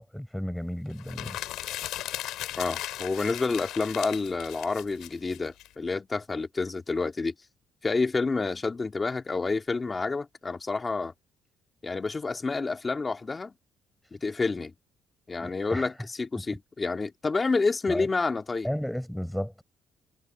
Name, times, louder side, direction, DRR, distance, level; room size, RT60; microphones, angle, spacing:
voice 1, 0.0-1.4 15.4-15.9 16.4-16.5 17.9-18.1 18.6-19.6, equal, ahead, 5.2 m, -33 dB
sound 1, 1.0-5.7, left 14 dB, 80° left, 6.3 m, -37 dB
voice 2, 2.6-7.3 7.8-11.1 11.8-13.5 14.1-14.7 15.3-18.7, left 3 dB, 20° left, 2.1 m, -29 dB
cardioid pair, 150°, 0 cm